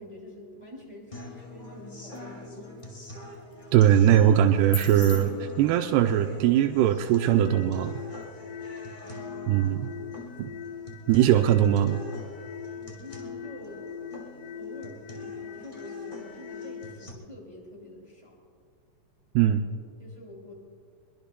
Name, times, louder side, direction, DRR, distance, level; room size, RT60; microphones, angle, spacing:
voice 1, 0.0-2.8 9.0-9.7 9.9-10.2 12.8-13.9 14.5-18.4 20.0-20.5, left 1 dB, 15° right, -2 dB, 1.9 m, -46 dB
sound 1, 1.1-17.1, left 1 dB, 30° left, 0.8 m, -45 dB
sound 2, 1.3-15.3, left 5 dB, 65° left, 3.0 m, -50 dB
voice 2, 3.7-7.9 9.5-9.9 10.4-10.5 11.1-12.0 19.4-19.6, right 10 dB, 90° right, 4 dB, 2.7 m, -21 dB
sound 3, 7.4-17.1, left 7 dB, 85° left, 1.8 m, -41 dB
22.5 x 22.5 x 2.2 m, 2.1 s
omnidirectional pair, 4.6 m